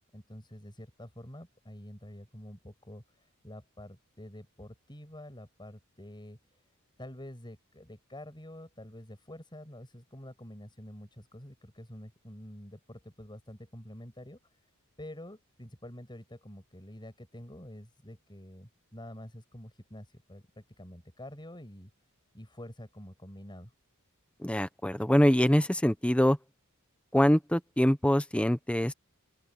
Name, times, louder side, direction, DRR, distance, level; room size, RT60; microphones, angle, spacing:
voice 1, 0.1-6.6 7.0-14.4 15.0-21.9 22.3-23.7, left 1 dB, 20° left, 7.9 m, -47 dB
voice 2, 24.4-26.4 27.1-28.9, equal, 5° left, 1.1 m, -24 dB
open air
head